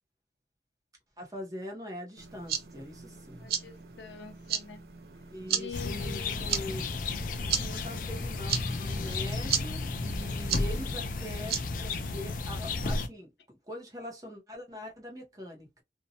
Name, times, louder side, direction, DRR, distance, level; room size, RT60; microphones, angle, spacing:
voice 1, 1.2-3.5 5.3-6.8 7.4-15.8, left 1 dB, 20° right, 0.7 m, -43 dB
sound 1, 2.2-12.4, right 8 dB, 60° right, 0.4 m, -37 dB
voice 2, 3.4-4.8 5.5-6.3, left 5 dB, 85° left, 0.6 m, -45 dB
sound 2, 5.7-13.1, left 3 dB, 50° left, 0.3 m, -33 dB
2.7 x 2.1 x 2.6 m
head